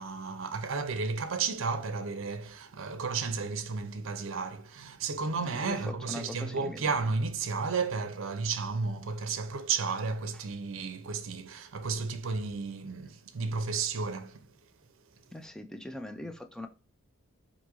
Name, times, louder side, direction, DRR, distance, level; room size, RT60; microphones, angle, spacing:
voice 1, 0.0-14.5, right 4 dB, 60° right, 0.5 m, -33 dB
voice 2, 5.4-6.8 15.3-16.7, left 1 dB, 5° left, 0.3 m, -41 dB
4.8 x 2.6 x 2.9 m
head